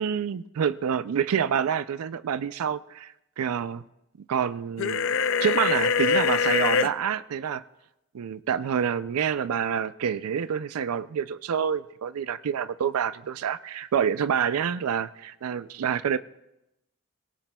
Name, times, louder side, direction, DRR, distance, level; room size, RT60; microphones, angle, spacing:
voice 1, 0.0-3.8 4.3-5.1 5.4-7.6 8.1-16.2, right 7 dB, 85° right, 0.4 m, -27 dB
sound 1, 4.8-6.9, left 6 dB, 60° left, 0.4 m, -23 dB
23.5 x 18.0 x 2.3 m
head